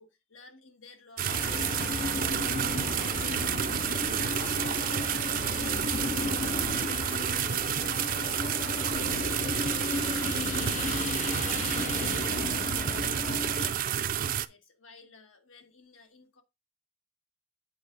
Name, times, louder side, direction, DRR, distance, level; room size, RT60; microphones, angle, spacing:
voice 1, 0.0-2.1 2.3-8.5 8.8-9.6 9.9-13.2 13.6-16.4, left 3 dB, 75° left, 1.5 m, -54 dB
sound 1, 1.2-14.5, right 10 dB, 45° right, 0.4 m, -30 dB
sound 2, 1.3-13.7, left 4 dB, 35° left, 0.4 m, -34 dB
8.3 x 4.9 x 3.8 m
head